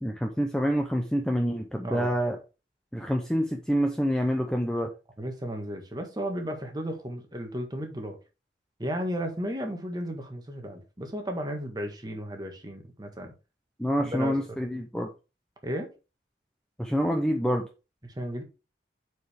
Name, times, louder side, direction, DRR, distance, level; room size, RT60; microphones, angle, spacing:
voice 1, 0.0-2.4 2.9-4.9 13.8-15.1 16.8-17.6, equal, 5° left, 0.7 m, -27 dB
voice 2, 1.8-2.1 5.2-8.2 8.8-13.3 14.0-14.4 15.6-15.9 18.0-18.4, equal, 20° right, 1.4 m, -34 dB
7.9 x 4.8 x 3.5 m
head